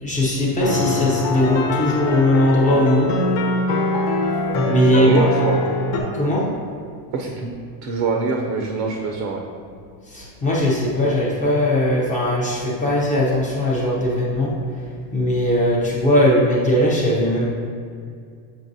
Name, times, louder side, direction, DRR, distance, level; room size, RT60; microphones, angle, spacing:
voice 1, 0.0-3.1 4.7-5.2 6.1-6.5 10.1-14.5 15.1-17.5, left 1 dB, 15° left, -4 dB, 0.5 m, -19 dB
sound 1, 0.6-6.0, left 2 dB, 80° left, 1.1 m, -22 dB
voice 2, 4.5-5.7 7.1-7.5 7.8-9.4, right 4 dB, 45° right, 2 dB, 0.5 m, -24 dB
7.3 x 5.4 x 2.6 m, 2.3 s
cardioid pair, 175°, 46 cm